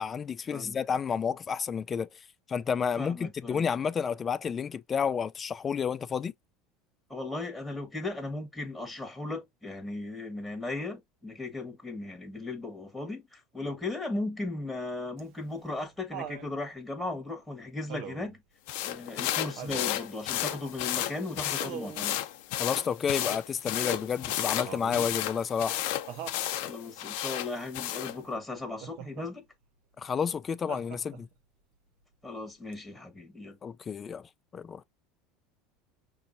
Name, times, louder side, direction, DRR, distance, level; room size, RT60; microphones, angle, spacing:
voice 1, 0.0-2.1 2.5-6.3 22.6-25.8 30.0-31.3 33.6-34.8, left 6 dB, 30° left, 0.4 m, -30 dB
voice 2, 3.0-3.7 7.1-18.4 18.8-22.2 26.6-29.4 32.2-33.6, left 2 dB, ahead, 1.4 m, -37 dB
Laughter, 15.2-16.5 17.9-18.4 19.6-20.0 21.6-22.1 24.6-25.1 26.1-26.4 28.8-29.3 30.7-31.3 32.7-32.8, right 9 dB, 65° right, 0.8 m, -41 dB
sound 1, 18.7-28.2, left 13 dB, 70° left, 0.7 m, -33 dB
5.6 x 2.6 x 2.6 m
supercardioid pair, 105°, 0 cm